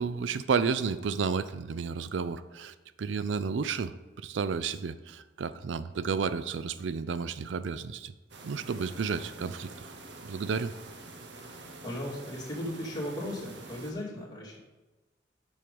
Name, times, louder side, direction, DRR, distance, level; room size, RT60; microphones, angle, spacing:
voice 1, 0.0-3.9 4.2-8.1 8.4-9.9 10.2-10.7, right 5 dB, 85° right, 14 dB, 0.4 m, -32 dB
sound 1, 8.3-13.9, right 2 dB, 70° right, 1.0 m, -47 dB
voice 2, 11.8-14.6, left 1 dB, 25° left, -5 dB, 2.2 m, -36 dB
7.5 x 6.4 x 5.3 m, 1.2 s
head